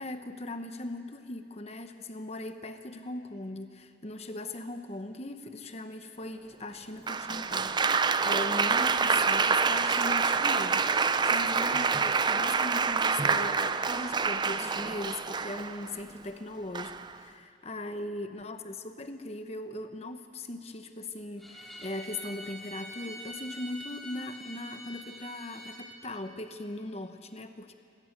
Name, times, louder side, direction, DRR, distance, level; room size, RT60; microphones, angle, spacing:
voice 1, 0.0-27.7, left 2 dB, 35° left, 8 dB, 1.1 m, -39 dB
Applause, 7.1-15.9 16.7-17.1, right 5 dB, 25° right, 0.4 m, -27 dB
Bowed string instrument, 21.4-25.8, equal, ahead, 2.6 m, -45 dB
26.5 x 18.5 x 6.8 m, 2.4 s
head